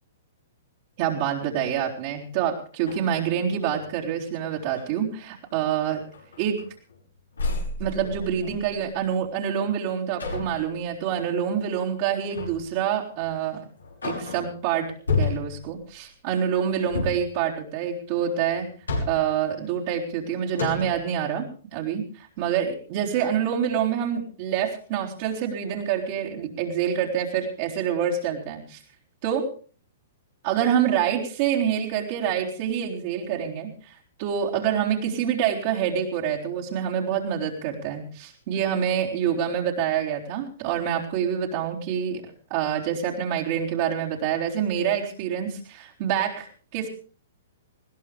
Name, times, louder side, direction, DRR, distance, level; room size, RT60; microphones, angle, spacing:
voice 1, 1.0-6.0 6.4-6.6 7.8-13.7 14.0-18.7 19.1-28.8 29.2-29.5 30.4-42.2 42.5-46.9, right 8 dB, 50° right, -3 dB, 3.9 m, -26 dB
sound 1, 2.2-2.3 2.7-4.0 4.5-4.9 5.5-5.7 6.1-7.0 7.3-8.9 10.2-10.7 12.3-12.7 13.2-13.3 13.8-14.6 15.1-15.7 16.8-17.3 18.5-19.4 20.1-20.2 20.5-21.1, left 4 dB, 85° left, 5.3 m, -31 dB
20.5 x 16.5 x 3.5 m, 0.38 s
hypercardioid pair, 120°, 0 cm